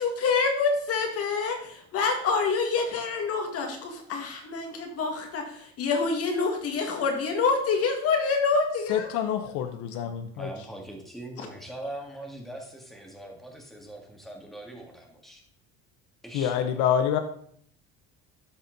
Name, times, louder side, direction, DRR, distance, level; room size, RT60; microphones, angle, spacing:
voice 1, 0.0-9.1 9.4-9.5 11.4-11.5, left 4 dB, 55° left, 4 dB, 1.9 m, -27 dB
voice 2, 8.9-10.5 16.3-17.2, left 9 dB, 75° left, 8 dB, 0.8 m, -26 dB
voice 3, 10.3-15.4 16.2-16.7, right 1 dB, ahead, 1 dB, 1.8 m, -41 dB
12.5 x 4.3 x 3.9 m, 0.63 s
cardioid pair, 115°, 29 cm